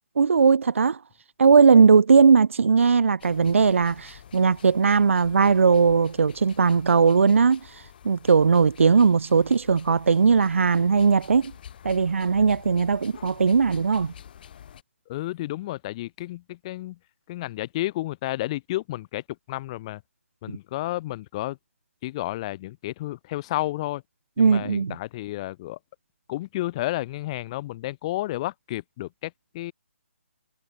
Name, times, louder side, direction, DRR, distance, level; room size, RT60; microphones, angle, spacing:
voice 1, 0.2-1.0 1.4-7.6 8.0-11.5 11.8-14.1 24.4-24.9, right 5 dB, 65° right, 0.4 m, -19 dB
sound 1, 3.2-14.8, left 9 dB, 40° left, 4.5 m, -48 dB
voice 2, 15.1-17.0 17.3-20.0 20.4-21.6 22.0-24.0 24.4-25.8 26.3-29.7, left 16 dB, 25° left, 0.7 m, -31 dB
figure-of-eight pair, 145°, 7 cm